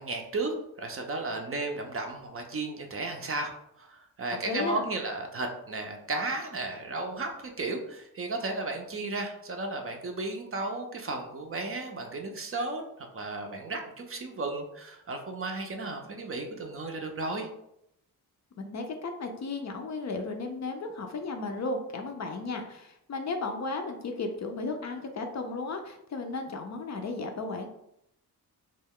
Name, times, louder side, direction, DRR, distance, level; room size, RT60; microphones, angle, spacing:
voice 1, 0.0-3.5 3.8-17.5, right 2 dB, 35° right, 3 dB, 0.5 m, -34 dB
voice 2, 4.5-4.8 18.6-27.7, left 3 dB, 45° left, 4 dB, 0.4 m, -34 dB
2.2 x 2.2 x 3.5 m, 0.78 s
cardioid pair, 80°, 39 cm